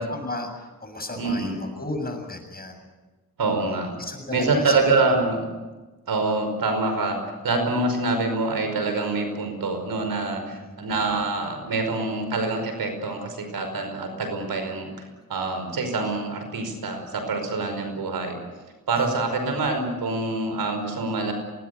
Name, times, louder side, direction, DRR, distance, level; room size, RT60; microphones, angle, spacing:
voice 1, 0.1-2.9 4.0-4.8 10.5-10.8 19.0-19.1, left 2 dB, 25° left, 4 dB, 7.4 m, -34 dB
voice 2, 1.2-1.6 3.4-3.9 4.3-5.5 6.1-14.9 15.3-18.4 18.9-21.3, right 3 dB, 80° right, 6 dB, 5.3 m, -25 dB
24.5 x 19.5 x 8.5 m, 1.2 s
cardioid pair, 65°, 35 cm